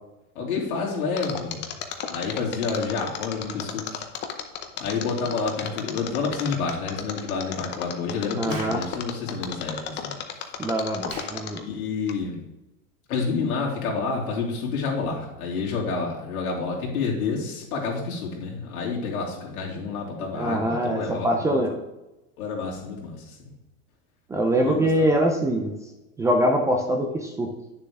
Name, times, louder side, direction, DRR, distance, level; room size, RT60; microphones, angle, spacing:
voice 1, 0.3-1.6 2.1-4.1 4.8-10.1 11.5-12.4 13.1-21.6 22.4-23.5 24.5-25.2, left 4 dB, 85° left, -3 dB, 2.9 m, -29 dB
Mechanisms, 1.2-11.7 12.1-12.2, left 9 dB, 25° left, 0.7 m, -33 dB
voice 2, 8.4-8.8 10.6-11.6 20.3-21.0 21.2-21.7 24.3-25.7 26.2-27.5, right 1 dB, 10° right, 2 dB, 0.4 m, -23 dB
Explosion, 8.5-8.8 11.1-11.4, right 3 dB, 80° right, 3.1 m, -39 dB
9.3 x 6.7 x 3.6 m, 0.98 s
supercardioid pair, 140°, 42 cm